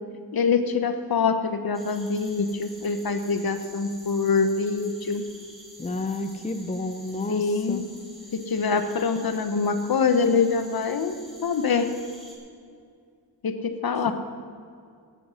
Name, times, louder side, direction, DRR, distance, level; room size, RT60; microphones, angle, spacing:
voice 1, 0.3-5.3 7.3-7.8 8.3-11.2 11.4-11.9 13.4-14.1, left 5 dB, 60° left, 9 dB, 0.9 m, -24 dB
sound 1, 1.7-12.4, equal, ahead, 2.7 m, -48 dB
voice 2, 5.8-7.8 14.1-14.2, left 2 dB, 15° left, 8 dB, 0.6 m, -30 dB
14.5 x 9.6 x 6.3 m, 2.3 s
wide cardioid pair, 165°, 41 cm